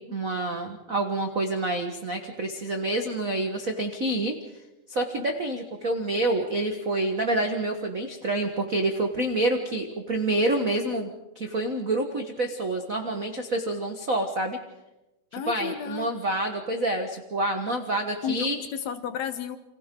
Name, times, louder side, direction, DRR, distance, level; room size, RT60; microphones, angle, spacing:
voice 1, 0.0-4.3 4.9-14.6 15.3-18.6, right 2 dB, 80° right, 4 dB, 0.7 m, -27 dB
voice 2, 15.3-16.1 18.2-19.6, left 8 dB, 65° left, 10 dB, 2.0 m, -32 dB
29.0 x 26.0 x 3.8 m, 1.0 s
omnidirectional pair, 3.8 m